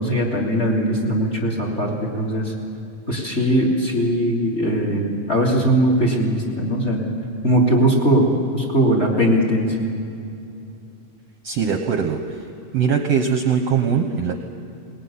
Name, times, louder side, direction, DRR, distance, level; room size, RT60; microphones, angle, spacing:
voice 1, 0.0-2.5 3.1-7.0 7.4-8.3 8.5-9.7, right 1 dB, 20° left, 0 dB, 3.2 m, -20 dB
voice 2, 11.4-12.2 12.7-14.3, right 6 dB, 65° right, 5 dB, 1.7 m, -21 dB
22.0 x 19.5 x 9.7 m, 2.6 s
omnidirectional pair, 3.9 m